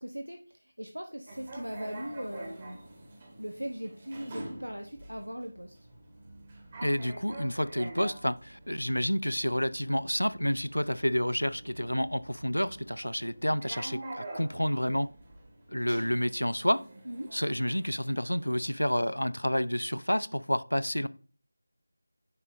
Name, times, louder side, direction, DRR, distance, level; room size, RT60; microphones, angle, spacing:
voice 1, 0.0-2.8 3.4-5.8 17.1-17.3, equal, 80° right, 0.7 m, -39 dB
sound 1, 1.3-18.8, right 2 dB, 25° right, 1.4 m, -47 dB
voice 2, 6.8-15.1 15.7-16.8 17.3-21.1, equal, 85° left, 0.4 m, -29 dB
9.6 x 4.1 x 2.6 m
figure-of-eight pair, 165°, 0 cm